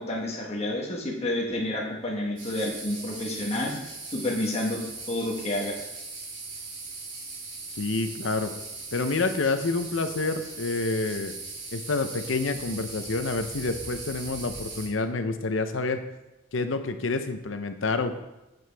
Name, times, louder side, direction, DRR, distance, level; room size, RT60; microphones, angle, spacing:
voice 1, 0.0-3.7 4.1-4.8 5.1-5.8, left 1 dB, 30° left, -2 dB, 1.3 m, -29 dB
sound 1, 2.4-14.9, right 3 dB, 65° right, 3.3 m, -39 dB
voice 2, 7.8-8.5 8.9-11.3 11.7-16.0 16.5-18.1, left 3 dB, 75° left, 8 dB, 0.7 m, -28 dB
7.7 x 7.7 x 3.4 m, 0.98 s
head